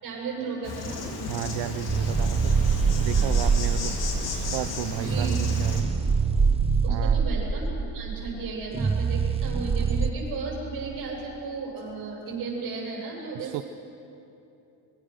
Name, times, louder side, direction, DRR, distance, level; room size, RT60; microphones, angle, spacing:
voice 1, 0.0-1.3 3.1-3.5 4.9-5.6 5.9-6.0 6.8-13.6, right 4 dB, 50° right, -3 dB, 8.0 m, -35 dB
Insect, 0.6-5.8, left 4 dB, 55° left, 3.5 m, -34 dB
voice 2, 1.3-2.6 3.0-5.9 6.9-7.2 13.3-13.6, right 14 dB, 75° right, 12 dB, 0.7 m, -33 dB
sound 1, 1.9-10.1, right 5 dB, 15° right, 0.6 m, -24 dB
24.0 x 23.0 x 6.5 m, 2.9 s
cardioid pair, 155°, 44 cm